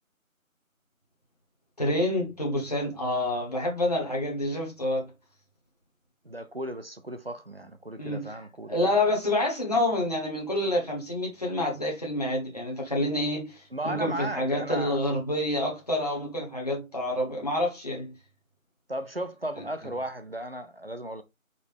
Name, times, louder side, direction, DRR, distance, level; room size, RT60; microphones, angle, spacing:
voice 1, 1.8-5.1 8.0-8.3 8.7-18.1, left 1 dB, 30° left, 1.0 m, -28 dB
voice 2, 6.2-9.0 13.7-15.0 18.9-21.2, right 1 dB, 45° right, 0.5 m, -35 dB
5.1 x 2.5 x 3.3 m
figure-of-eight pair, 165°, 42 cm